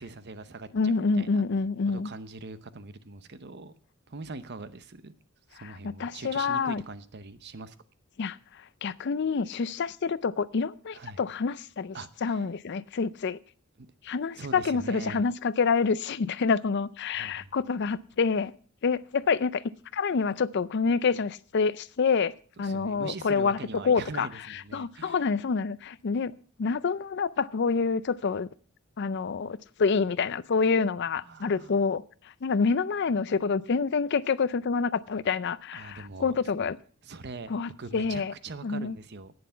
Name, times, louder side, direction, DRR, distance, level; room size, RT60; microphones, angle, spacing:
voice 1, 0.0-1.4 1.9-3.7 4.1-5.1 5.5-7.7 10.9-11.2 11.9-12.5 13.8-13.9 14.4-15.3 17.1-17.6 22.6-25.2 31.2-31.7 35.7-36.4 37.0-37.5 37.8-39.3, right 3 dB, 50° right, 0.8 m, -42 dB
voice 2, 0.7-2.1 5.6-6.8 8.2-12.0 12.2-13.4 14.0-18.5 18.8-23.6 23.8-26.3 26.6-28.5 29.0-36.8 37.5-38.3 38.6-39.0, left 5 dB, 55° left, 0.5 m, -27 dB
11.0 x 9.6 x 5.7 m
head